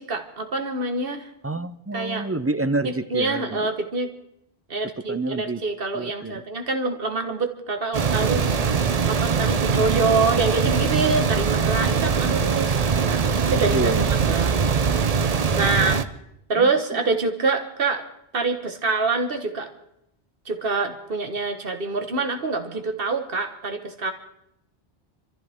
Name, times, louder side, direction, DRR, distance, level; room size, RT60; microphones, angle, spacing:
voice 1, 0.0-1.3 1.9-2.3 2.8-4.1 4.7-8.5 9.1-13.9 14.3-14.7 15.6-16.0 16.5-18.0 18.3-19.7 20.5-24.1, right 3 dB, 65° right, 6 dB, 1.7 m, -25 dB
voice 2, 1.4-3.5 5.1-5.6 5.9-6.3 13.7-14.1, right 2 dB, 25° right, 13 dB, 0.3 m, -27 dB
sound 1, 7.9-16.0, right 6 dB, 40° right, 0.7 m, -22 dB
26.5 x 14.0 x 3.6 m, 0.80 s
omnidirectional pair, 1.0 m